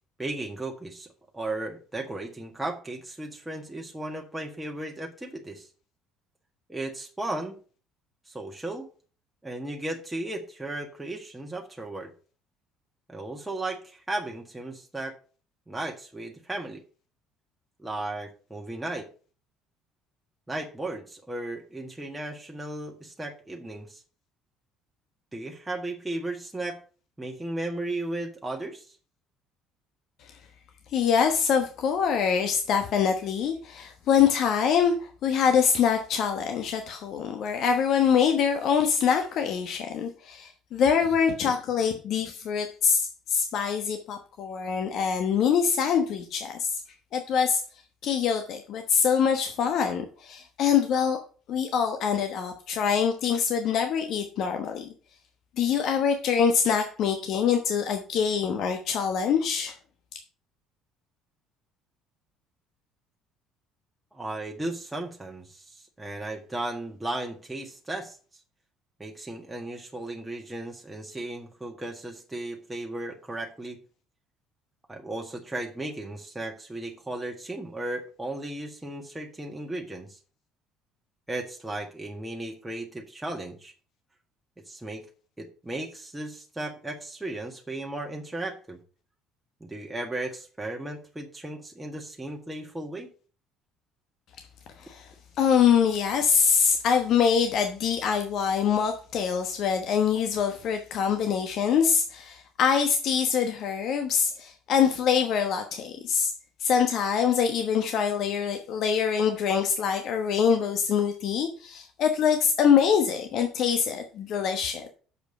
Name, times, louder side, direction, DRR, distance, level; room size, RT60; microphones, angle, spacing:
voice 1, 0.2-1.1 1.3-5.7 6.7-7.6 8.3-8.9 9.4-12.1 13.1-15.2 15.7-16.8 17.8-19.1 20.5-24.0 25.3-26.8 27.2-29.0 64.1-68.2 69.0-73.8 74.9-80.2 81.3-83.7 84.7-85.0 85.4-88.8 89.6-93.1, right 2 dB, 10° right, 1.7 m, -35 dB
voice 2, 30.9-46.8 47.1-47.6 48.0-51.2 51.5-54.9 55.6-59.7 60.1-60.2 94.8-95.1 95.4-106.3 106.6-114.9, left 7 dB, 60° left, 1.1 m, -24 dB
7.0 x 5.1 x 6.5 m
hypercardioid pair, 60°, 0 cm